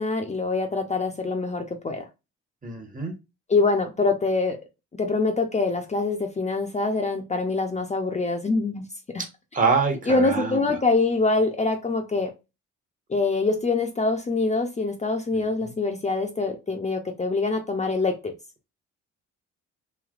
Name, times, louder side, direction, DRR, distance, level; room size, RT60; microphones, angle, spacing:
voice 1, 0.0-2.0 3.5-4.6 5.0-8.8 9.1-9.2 10.1-12.3 13.1-18.3, left 3 dB, 25° left, 0.6 m, -24 dB
voice 2, 2.6-3.1 9.5-10.7 15.3-15.7, right 4 dB, 25° right, 1.0 m, -25 dB
3.2 x 2.7 x 2.4 m
cardioid pair, 90°, 30 cm